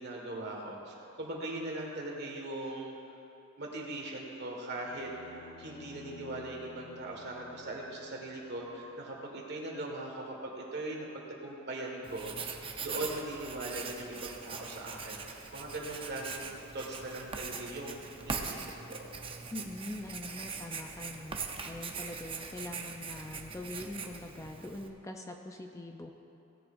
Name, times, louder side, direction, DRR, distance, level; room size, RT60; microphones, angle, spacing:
voice 1, 0.0-2.9 3.6-19.0, right 1 dB, 55° right, -1 dB, 1.7 m, -40 dB
sound 1, 4.7-9.0, left 3 dB, 50° left, 1.1 m, -53 dB
Writing, 12.0-24.9, right 5 dB, 25° right, 0.6 m, -42 dB
voice 2, 19.5-21.4 21.6-26.1, left 2 dB, 15° left, 3 dB, 0.5 m, -43 dB
17.0 x 10.5 x 2.6 m, 2.8 s
head